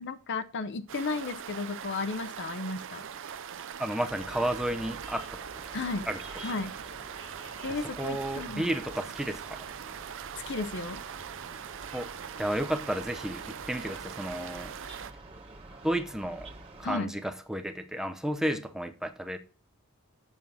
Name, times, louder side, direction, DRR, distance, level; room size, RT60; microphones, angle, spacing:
voice 1, 0.0-3.0 5.7-6.1 6.4-6.8 7.6-8.7 10.5-11.0 16.8-17.2, left 3 dB, 55° left, 0.7 m, -34 dB
sound 1, 0.9-15.1, right 8 dB, 60° right, 0.5 m, -42 dB
voice 2, 3.8-5.7 6.1-6.2 8.0-9.6 11.9-12.1 12.4-14.7 15.8-16.5 16.8-19.4, right 1 dB, ahead, 0.7 m, -32 dB
sound 2, 4.1-17.0, right 2 dB, 25° right, 1.5 m, -48 dB
7.2 x 6.3 x 5.5 m
head